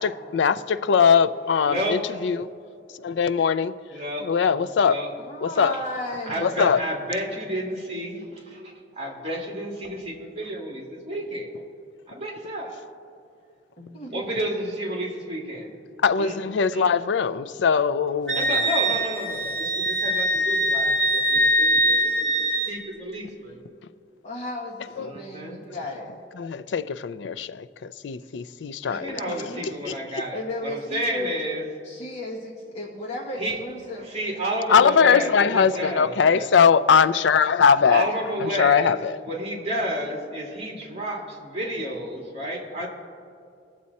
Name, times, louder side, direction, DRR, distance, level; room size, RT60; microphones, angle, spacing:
voice 1, 0.0-2.5 3.0-3.7 4.2-5.0 5.4-5.7 6.4-6.8 16.0-18.6 25.0-25.1 26.4-29.2 29.6-30.0 34.7-38.0 38.4-39.2, left 6 dB, 85° left, 0.4 m, -21 dB
voice 2, 1.7-2.2 3.9-4.3 4.8-5.1 6.2-11.5 12.1-12.8 14.1-15.7 16.2-16.4 16.7-16.9 18.3-23.6 25.0-25.6 28.8-31.7 33.4-33.6 33.9-36.5 37.9-39.0 39.3-42.9, equal, 35° right, 2.5 m, -31 dB
voice 3, 5.3-6.6 13.8-14.3 24.2-26.1 28.9-29.7 30.3-31.4 31.8-34.1 37.8-38.4, left 1 dB, 40° left, 1.8 m, -34 dB
Wind instrument woodwind instrument, 18.3-22.8, equal, 5° left, 2.3 m, -22 dB
20.5 x 7.5 x 4.2 m
head